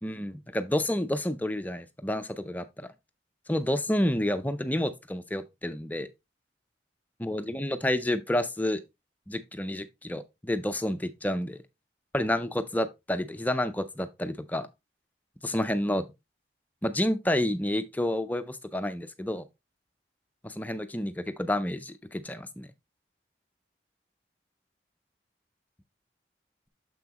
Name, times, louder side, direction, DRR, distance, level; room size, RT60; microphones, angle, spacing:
voice 1, 0.0-2.7 3.5-6.1 7.2-8.8 9.3-11.6 12.1-14.7 15.4-16.1 16.8-19.5 20.4-22.7, left 1 dB, 10° left, 0.5 m, -29 dB
6.9 x 5.9 x 2.9 m
head